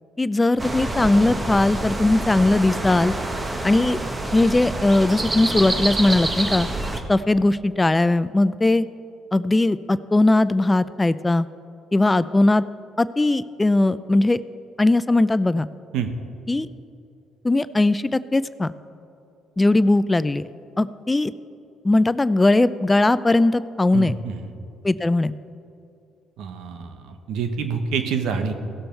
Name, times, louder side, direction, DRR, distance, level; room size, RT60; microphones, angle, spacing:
voice 1, 0.2-3.1 3.6-4.0 4.3-6.7 7.1-8.9 9.3-11.5 11.9-12.6 13.0-14.4 14.8-15.7 16.5-16.7 17.4-18.7 19.6-20.5 20.8-21.3 21.8-24.1 24.8-25.4, left 2 dB, 20° left, 16 dB, 0.3 m, -19 dB
sound 1, 0.6-7.0, right 2 dB, 25° right, 1.2 m, -27 dB
voice 2, 23.9-24.5 26.4-28.5, right 6 dB, 75° right, 7 dB, 1.0 m, -27 dB
16.5 x 6.8 x 4.5 m, 2.6 s
supercardioid pair, 65°, 0 cm